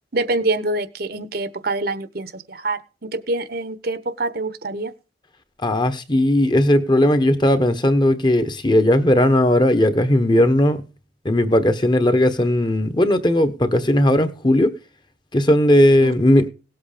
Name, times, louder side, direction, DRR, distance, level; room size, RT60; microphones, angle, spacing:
voice 1, 0.1-2.8 3.1-4.9 16.0-16.1, right 2 dB, 55° right, 1.1 m, -25 dB
voice 2, 5.6-10.8 11.2-14.7 15.3-16.5, left 1 dB, 25° left, 1.2 m, -17 dB
18.0 x 8.0 x 5.1 m
head